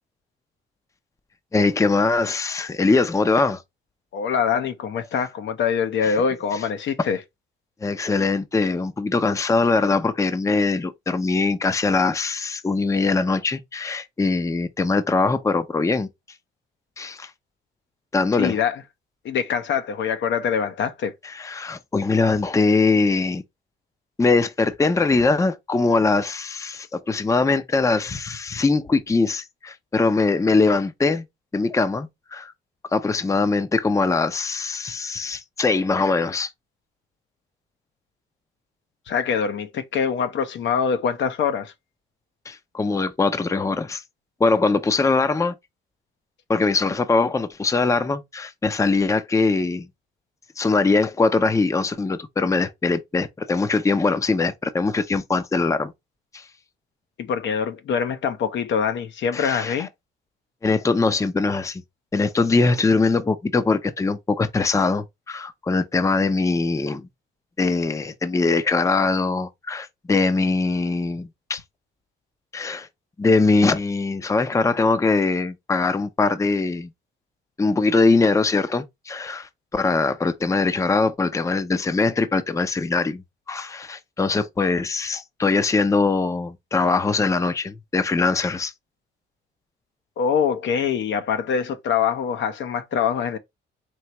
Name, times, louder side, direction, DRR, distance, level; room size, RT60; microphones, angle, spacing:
voice 1, 1.5-3.6 6.0-6.1 7.0-7.1 7.8-16.1 17.0-17.3 18.1-18.6 21.2-23.4 24.2-31.2 31.5-32.5 32.9-36.5 42.5-44.0 44.4-45.5 46.5-49.9 50.6-55.9 56.3-56.5 59.3-59.9 60.6-61.8 62.1-67.1 67.6-71.6 72.5-72.9 73.2-76.9 77.6-88.7, left 3 dB, 15° left, 0.5 m, -22 dB
voice 2, 4.1-7.2 18.4-18.8 19.2-21.1 39.1-41.7 57.2-59.9 90.2-93.4, left 7 dB, 70° left, 0.8 m, -24 dB
4.6 x 3.3 x 2.9 m
cardioid pair, 90°, 20 cm